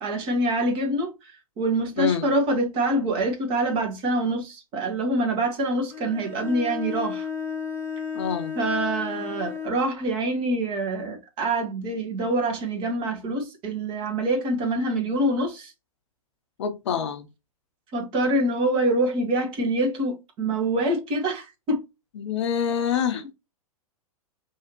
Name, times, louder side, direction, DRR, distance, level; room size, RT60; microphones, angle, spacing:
voice 1, 0.0-7.3 8.5-15.7 17.9-21.8, right 1 dB, 25° right, 1.3 m, -25 dB
voice 2, 2.0-2.3 8.1-8.5 16.6-17.3 22.2-23.3, left 7 dB, 50° left, 0.6 m, -26 dB
Bowed string instrument, 5.9-9.9, left 6 dB, 15° left, 0.8 m, -33 dB
4.7 x 2.8 x 2.9 m
figure-of-eight pair, 110°, 19 cm